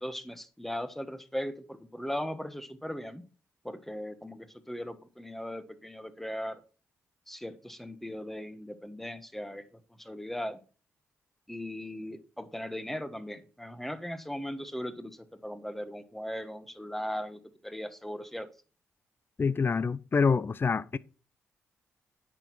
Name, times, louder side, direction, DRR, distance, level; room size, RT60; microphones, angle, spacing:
voice 1, 0.0-3.2 3.6-6.6 7.3-9.7 10.0-10.6 11.5-18.5, equal, 5° left, 1.3 m, -38 dB
voice 2, 19.4-21.0, left 5 dB, 40° left, 0.5 m, -26 dB
8.8 x 6.2 x 4.2 m
supercardioid pair, 50°, 6 cm